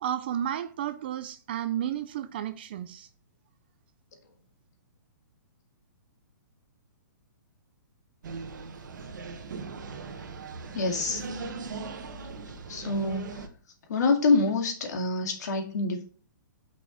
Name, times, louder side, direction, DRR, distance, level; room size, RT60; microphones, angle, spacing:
voice 1, 0.0-3.1, right 10 dB, 30° right, 0.4 m, -32 dB
sound 1, 8.2-13.5, right 4 dB, 65° right, 1.4 m, -39 dB
voice 2, 10.7-11.2 12.7-13.5 13.9-16.0, left 3 dB, 55° left, 2.1 m, -26 dB
6.3 x 5.7 x 5.0 m
hypercardioid pair, 175°, 11 cm